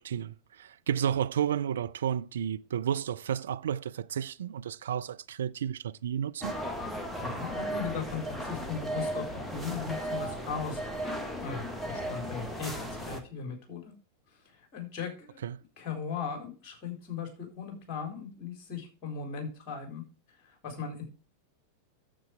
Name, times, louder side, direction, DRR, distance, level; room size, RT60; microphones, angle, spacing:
voice 1, 0.0-6.5 15.4-15.6, right 9 dB, 65° right, 0.4 m, -32 dB
sound 1, 6.4-13.2, equal, ahead, 1.6 m, -36 dB
voice 2, 7.2-10.8 11.4-13.9 14.3-15.4 15.8-20.0 20.4-21.0, left 6 dB, 35° left, 4.2 m, -38 dB
9.7 x 7.6 x 4.9 m
figure-of-eight pair, 90°, 0 cm